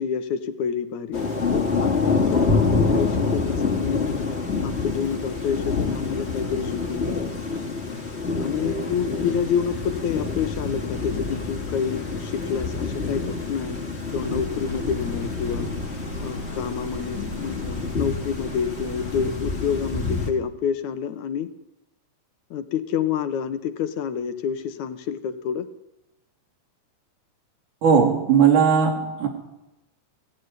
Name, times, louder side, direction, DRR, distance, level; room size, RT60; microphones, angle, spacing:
voice 1, 0.0-4.2 4.6-7.2 8.4-13.8 14.1-15.7 16.2-21.5 22.5-25.7, left 7 dB, 70° left, 10 dB, 2.6 m, -28 dB
Thunder / Rain, 1.1-20.3, left 4 dB, 20° left, 2.7 m, -27 dB
sound 1, 14.1-19.3, right 1 dB, 30° right, 4.4 m, -38 dB
voice 2, 27.8-29.3, right 7 dB, 75° right, 3 dB, 4.7 m, -18 dB
23.0 x 16.0 x 9.7 m, 0.95 s
omnidirectional pair, 3.6 m